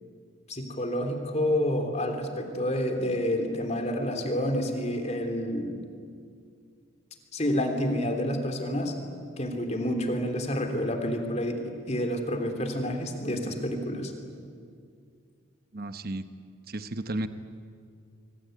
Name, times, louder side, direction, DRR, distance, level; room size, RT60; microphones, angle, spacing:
voice 1, 0.5-5.8 7.3-8.9 9.4-14.1, left 1 dB, 30° left, 5 dB, 3.3 m, -29 dB
voice 2, 15.7-16.2 16.7-17.3, right 1 dB, 45° right, 10 dB, 1.1 m, -33 dB
26.0 x 24.0 x 9.3 m, 2.3 s
head